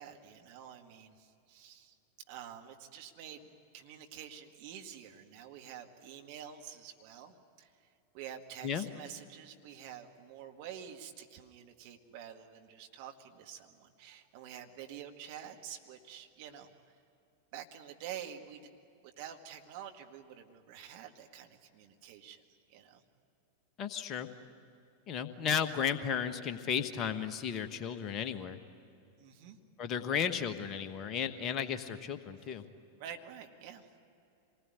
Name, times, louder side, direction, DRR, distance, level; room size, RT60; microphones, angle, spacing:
voice 1, 0.0-1.9 2.3-7.7 8.1-16.7 17.5-18.7 19.2-22.4 22.7-23.0 29.2-29.6 33.0-33.9, right 9 dB, 45° right, 3 dB, 1.9 m, -48 dB
voice 2, 23.8-24.3 25.1-28.6 29.8-32.6, left 7 dB, 30° left, 9 dB, 1.3 m, -34 dB
26.5 x 20.0 x 9.8 m, 2.7 s
figure-of-eight pair, 90°, 0 cm